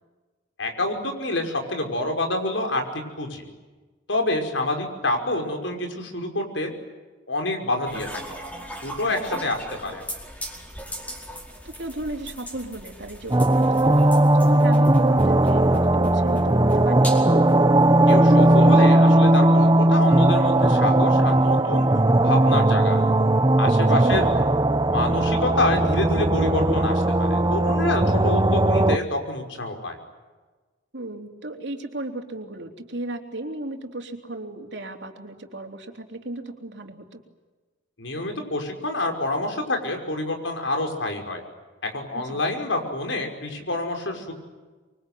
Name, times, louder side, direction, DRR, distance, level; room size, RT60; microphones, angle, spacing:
voice 1, 0.6-3.4 4.1-6.8 7.3-8.4 8.8-9.6 9.8-10.0 18.1-21.9 22.2-23.0 23.6-24.3 24.9-30.0 38.0-41.4 41.9-44.3, left 2 dB, 90° left, 4 dB, 5.7 m, -27 dB
sound 1, 7.9-18.8, equal, 10° left, 4.8 m, -39 dB
voice 2, 9.0-9.5 11.6-14.1 14.3-17.1 23.8-24.1 30.9-37.2 42.1-42.4, right 2 dB, 65° right, 4 dB, 3.5 m, -35 dB
sound 2, 13.3-29.0, right 1 dB, 20° right, 0.9 m, -18 dB
26.5 x 24.0 x 9.4 m, 1.3 s
head